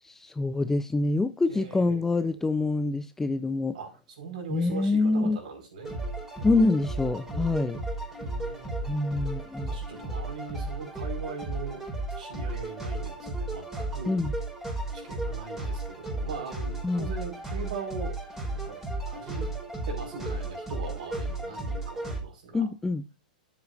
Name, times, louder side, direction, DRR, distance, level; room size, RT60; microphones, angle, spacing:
voice 1, 0.0-3.7 4.5-5.4 6.4-7.8 8.9-9.7 14.1-14.3 16.8-17.1 22.5-23.0, left 3 dB, 10° left, 0.4 m, -26 dB
voice 2, 1.5-2.1 3.7-3.9 4.2-5.9 8.2-9.1 9.7-11.8 12.2-14.2 14.9-18.2 18.5-18.8 19.1-19.5 19.9-22.7, right 5 dB, 65° right, 5.1 m, -40 dB
sound 1, 5.8-22.2, right 2 dB, 10° right, 5.2 m, -34 dB
12.5 x 8.1 x 2.7 m
figure-of-eight pair, 105°, 5 cm